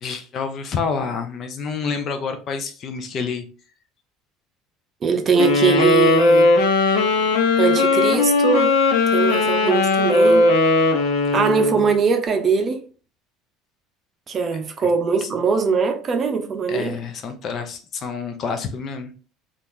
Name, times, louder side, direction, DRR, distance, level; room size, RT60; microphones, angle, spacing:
voice 1, 0.0-3.5 14.8-14.9 15.2-15.3 16.7-19.1, left 5 dB, 45° left, 0.6 m, -28 dB
voice 2, 5.0-6.6 7.6-8.8 9.1-10.5 11.3-12.8 14.3-17.0, right 5 dB, 35° right, 0.6 m, -21 dB
sound 1, 5.4-11.9, left 3 dB, 80° left, 0.8 m, -18 dB
2.8 x 2.5 x 3.6 m
supercardioid pair, 120°, 0 cm